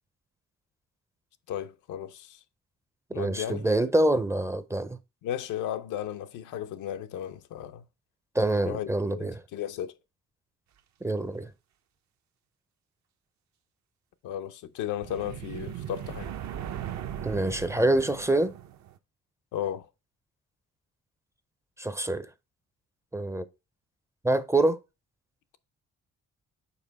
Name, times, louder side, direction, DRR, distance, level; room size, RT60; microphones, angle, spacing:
voice 1, 1.5-2.4 3.1-3.7 5.2-7.8 8.6-9.9 14.2-16.3 19.5-19.9, left 10 dB, 90° left, 0.6 m, -35 dB
voice 2, 3.2-5.0 8.4-9.4 11.0-11.5 17.2-18.5 21.8-22.3 23.1-23.4 24.2-24.8, right 2 dB, 10° right, 0.4 m, -25 dB
sound 1, 15.0-19.0, right 10 dB, 65° right, 0.6 m, -38 dB
5.5 x 4.4 x 3.9 m
cardioid pair, 90°, 30 cm